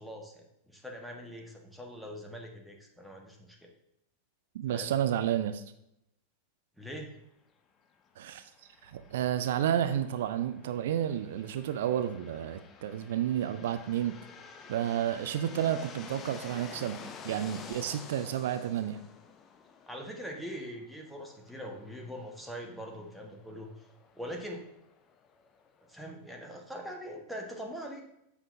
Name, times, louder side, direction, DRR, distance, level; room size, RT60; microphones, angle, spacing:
voice 1, 0.0-3.7 4.7-4.9 6.8-7.1 19.9-23.9 24.1-24.6 25.9-28.0, equal, ahead, 1 dB, 1.4 m, -42 dB
voice 2, 4.5-5.6 8.2-8.5 8.8-14.2 14.7-19.0, right 10 dB, 55° right, 11 dB, 0.5 m, -31 dB
sound 1, 8.6-26.2, left 6 dB, 25° left, 0.7 m, -51 dB
8.7 x 7.3 x 2.7 m, 0.80 s
figure-of-eight pair, 90°, 0 cm